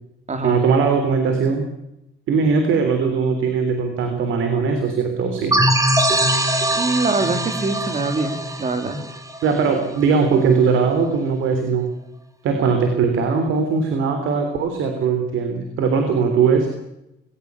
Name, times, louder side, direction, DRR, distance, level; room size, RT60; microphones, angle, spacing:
voice 1, 0.4-1.7 2.3-5.5 9.4-11.9 12.4-16.7, right 5 dB, 80° right, 6 dB, 3.5 m, -20 dB
sound 1, 5.5-10.0, right 1 dB, 15° right, 3.0 m, -21 dB
voice 2, 6.8-9.0, right 3 dB, 35° right, 9 dB, 3.2 m, -24 dB
21.0 x 17.5 x 8.3 m, 0.87 s
cardioid pair, 90°, 20 cm